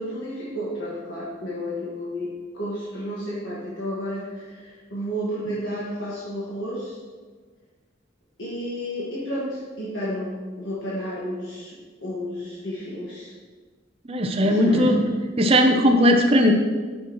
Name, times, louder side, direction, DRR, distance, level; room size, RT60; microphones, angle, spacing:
voice 1, 0.0-2.3 2.5-7.0 8.4-11.7 12.0-13.3 14.4-14.9 15.8-15.9, equal, 70° left, -7 dB, 1.6 m, -31 dB
voice 2, 14.0-15.0 15.4-16.5, equal, 30° right, 2 dB, 0.6 m, -18 dB
9.7 x 6.2 x 3.0 m, 1.4 s
head